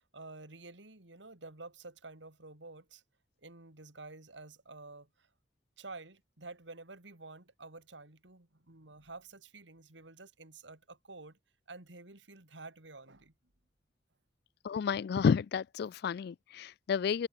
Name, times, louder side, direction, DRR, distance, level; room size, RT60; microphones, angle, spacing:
voice 1, 0.0-3.0 3.4-5.3 5.8-11.4 11.7-13.3, right 3 dB, 85° right, 3.4 m, -50 dB
voice 2, 14.6-17.3, left 6 dB, 60° left, 0.3 m, -31 dB
head